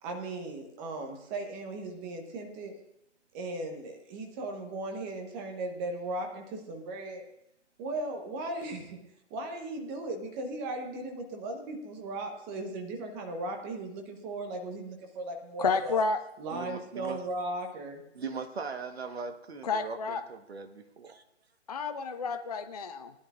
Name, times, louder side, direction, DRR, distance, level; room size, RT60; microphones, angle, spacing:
voice 1, 0.0-2.8 3.3-7.2 7.8-9.0 9.3-16.0 16.4-18.0, right 2 dB, 15° right, 4 dB, 1.0 m, -37 dB
voice 2, 15.6-16.2 19.6-20.2 21.7-23.1, left 4 dB, 35° left, 9 dB, 0.4 m, -30 dB
voice 3, 16.5-17.2 18.1-21.2, right 5 dB, 60° right, 7 dB, 1.4 m, -39 dB
18.5 x 11.0 x 2.5 m, 0.79 s
figure-of-eight pair, 145°, 36 cm